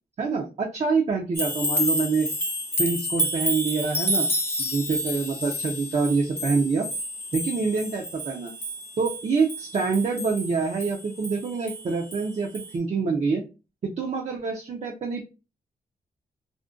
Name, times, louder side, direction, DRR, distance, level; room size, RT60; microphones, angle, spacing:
voice 1, 0.2-2.3 2.8-4.3 4.6-6.9 7.3-8.5 9.0-13.4 13.8-15.2, right 4 dB, 45° right, 0 dB, 0.4 m, -26 dB
sound 1, 1.3-12.3 12.5-12.7, equal, 15° left, 0.5 m, -30 dB
2.5 x 2.1 x 2.4 m, 0.30 s
wide cardioid pair, 120°, 16 cm